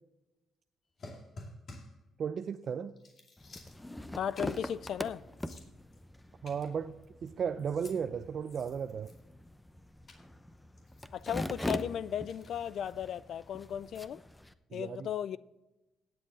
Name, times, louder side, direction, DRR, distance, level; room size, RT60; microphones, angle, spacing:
sound 1, 1.0-2.0 2.5-2.7 3.0-4.1 4.3-4.7 5.1-5.2 5.4-6.0 6.4-7.3 7.6-8.0 8.4-9.4 10.1-10.2 10.8-11.9 12.3-12.5, left 2 dB, 50° left, 2.5 m, -52 dB
voice 1, 2.2-2.9 6.4-6.9 7.2-9.1 14.7-15.1, right 7 dB, 55° right, 0.5 m, -35 dB
sound 2, 3.4-14.5, left 1 dB, 10° left, 0.7 m, -43 dB
voice 2, 4.1-5.2 11.1-14.2 14.7-15.4, left 9 dB, 65° left, 0.3 m, -36 dB
17.5 x 7.7 x 3.9 m
cardioid pair, 90°, 0 cm